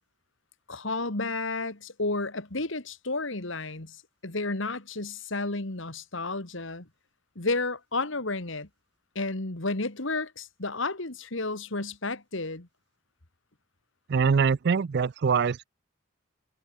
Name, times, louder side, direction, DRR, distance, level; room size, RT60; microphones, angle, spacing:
voice 1, 0.7-6.9 7.4-8.7 9.2-12.7, left 3 dB, 60° left, 2.3 m, -32 dB
voice 2, 14.1-15.6, right 5 dB, 50° right, 0.4 m, -23 dB
head